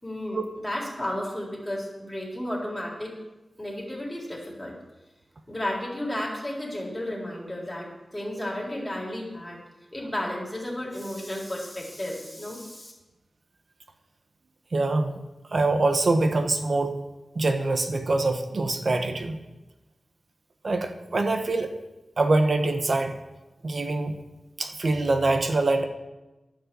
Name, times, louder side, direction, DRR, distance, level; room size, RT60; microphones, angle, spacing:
voice 1, 0.0-0.4 0.6-3.2 3.6-4.8 5.5-9.6 9.9-12.9, left 1 dB, 10° left, -3 dB, 4.0 m, -33 dB
voice 2, 14.7-15.2 15.5-17.0 17.3-19.4 20.6-21.7 22.2-23.2 23.6-24.2 24.6-25.9, right 2 dB, 60° right, 6 dB, 1.1 m, -24 dB
11.0 x 6.5 x 7.6 m, 1.1 s
wide cardioid pair, 70°, 0 cm